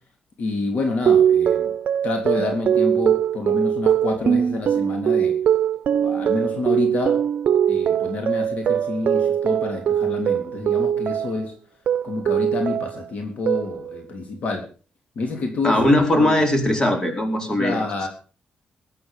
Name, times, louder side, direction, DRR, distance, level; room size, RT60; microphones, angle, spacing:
voice 1, 0.4-1.7 2.0-5.3 6.0-7.2 7.7-11.5 12.0-14.6 15.1-16.4 17.6-18.1, left 3 dB, 60° left, 3 dB, 3.4 m, -28 dB
sound 1, 1.1-11.5 11.9-13.1 13.5-14.0, right 9 dB, 70° right, 0.7 m, -21 dB
voice 2, 15.6-17.8, left 1 dB, 25° left, 3 dB, 4.6 m, -19 dB
21.5 x 8.5 x 5.4 m, 0.38 s
cardioid pair, 110°, 3 cm